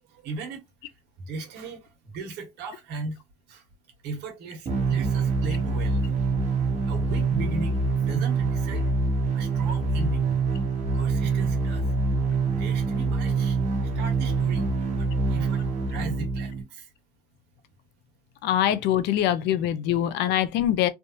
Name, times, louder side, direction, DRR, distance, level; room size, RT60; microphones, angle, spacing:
voice 1, 0.0-0.6 1.2-3.2 3.5-3.6 4.0-6.1 6.9-8.9 9.3-10.4 10.9-11.9 12.5-16.9, right 3 dB, 85° right, 1.5 m, -37 dB
sound 1, 4.7-16.6, right 4 dB, 40° right, 1.4 m, -25 dB
voice 2, 18.4-20.9, left 11 dB, 90° left, 0.6 m, -23 dB
3.4 x 2.7 x 2.7 m
cardioid pair, 110°, 17 cm